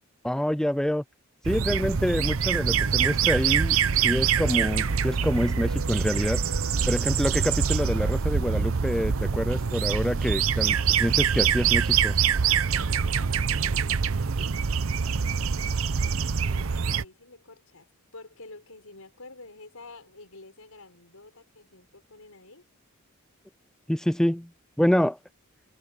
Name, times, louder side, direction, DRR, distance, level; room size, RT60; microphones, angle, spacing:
voice 1, 0.2-1.0 1.5-3.8 4.0-6.4 6.9-12.2 23.9-24.5 24.8-25.2, equal, 5° left, 0.3 m, -26 dB
sound 1, 1.4-17.0, right 6 dB, 70° right, 0.7 m, -25 dB
voice 2, 16.4-22.7, left 3 dB, 85° left, 5.4 m, -48 dB
head